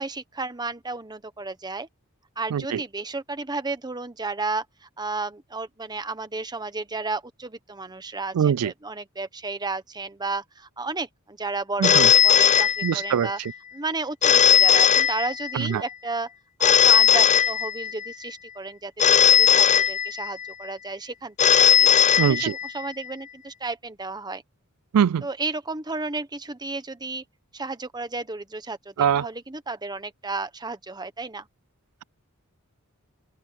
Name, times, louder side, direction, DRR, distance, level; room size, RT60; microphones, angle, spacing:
voice 1, 0.0-1.9 2.4-13.4 13.7-16.3 16.6-21.9 22.2-24.4 25.2-27.2 27.5-31.5, right 3 dB, 20° right, 1.2 m, -33 dB
voice 2, 2.5-2.8 8.3-8.7 11.8-12.1 12.8-13.3 15.5-15.8 22.2-22.5 24.9-25.2 29.0-29.3, right 8 dB, 85° right, 0.4 m, -22 dB
Telephone, 11.8-13.3 14.2-15.7 16.6-18.1 19.0-20.5 21.4-22.9, left 8 dB, 35° left, 0.6 m, -18 dB
head